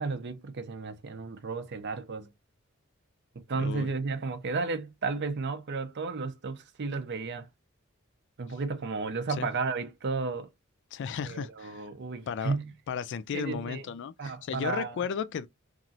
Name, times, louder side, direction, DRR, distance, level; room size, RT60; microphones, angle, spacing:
voice 1, 0.0-2.3 3.5-7.5 8.4-10.5 11.2-12.7 13.3-13.9 14.2-15.0, right 4 dB, 55° right, 0.5 m, -33 dB
voice 2, 3.6-3.9 9.4-9.5 10.9-11.9 12.3-12.6 12.9-15.5, left 7 dB, 60° left, 0.3 m, -34 dB
3.0 x 2.4 x 2.6 m
head